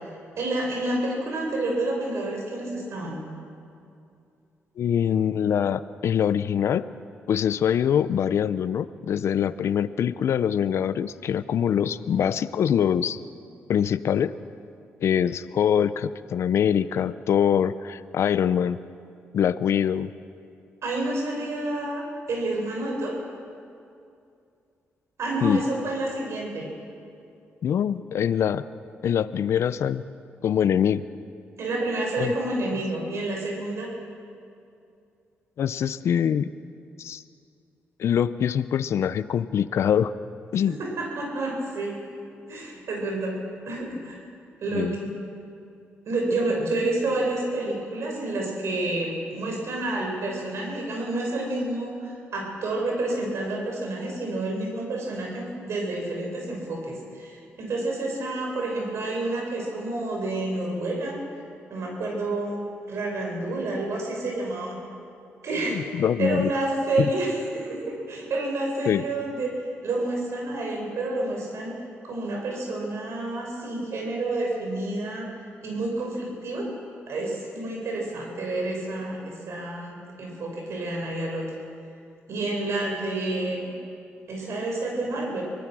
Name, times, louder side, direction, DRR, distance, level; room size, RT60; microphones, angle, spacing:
voice 1, 0.4-3.2 20.8-23.2 25.2-26.7 31.6-33.9 40.7-42.0 42.5-43.4 43.7-44.2 44.6-45.0 46.1-61.2 61.7-62.6 62.9-64.8 65.4-65.8 66.2-69.5 69.8-71.8 72.0-75.3 75.6-76.7 77.1-81.4 82.3-83.7 84.3-85.4, right 2 dB, 70° right, 0 dB, 6.5 m, -29 dB
voice 2, 4.8-6.8 7.3-13.2 13.7-14.3 15.0-18.8 19.3-20.1 25.4-25.6 27.6-28.6 29.0-30.0 30.4-31.0 32.2-32.3 35.6-36.5 37.0-37.2 38.0-40.1 40.5-40.8 44.7-45.0 65.7-66.5 67.0-67.1 68.9-69.0, left 8 dB, 70° left, 15 dB, 0.6 m, -24 dB
24.5 x 18.5 x 6.2 m, 2.5 s
cardioid pair, 70°, 5 cm